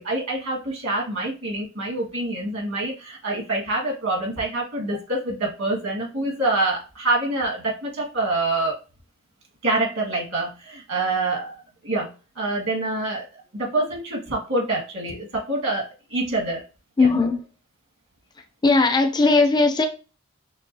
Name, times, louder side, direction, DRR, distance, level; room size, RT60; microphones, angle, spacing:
voice 1, 0.0-8.8 9.6-11.6 11.8-13.3 13.5-16.6, right 2 dB, 75° right, -2 dB, 1.8 m, -26 dB
voice 2, 17.0-17.4 18.6-19.9, left 3 dB, 20° left, 6 dB, 0.5 m, -18 dB
6.1 x 2.4 x 2.7 m, 0.34 s
head